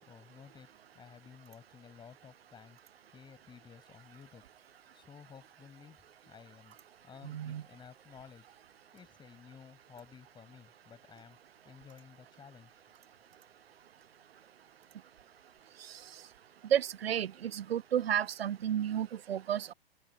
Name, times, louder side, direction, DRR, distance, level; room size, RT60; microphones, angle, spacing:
voice 1, 0.0-2.8 3.1-4.4 4.9-6.8 7.0-8.5 8.9-11.4 11.6-12.8, left 7 dB, 15° left, 6.0 m, -54 dB
voice 2, 7.2-7.6 16.7-19.7, right 10 dB, 70° right, 0.5 m, -32 dB
figure-of-eight pair, 115°, 32 cm